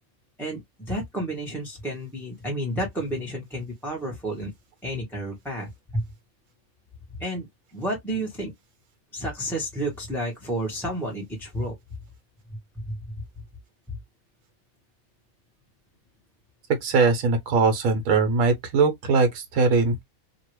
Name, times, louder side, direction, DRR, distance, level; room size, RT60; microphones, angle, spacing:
voice 1, 0.4-4.5 4.8-6.0 7.2-7.5 7.7-8.5 9.1-11.7 12.7-13.0 13.9-14.0, right 1 dB, ahead, 0.9 m, -31 dB
voice 2, 16.8-20.0, right 4 dB, 80° right, 1.4 m, -21 dB
2.9 x 2.5 x 3.0 m
omnidirectional pair, 1.5 m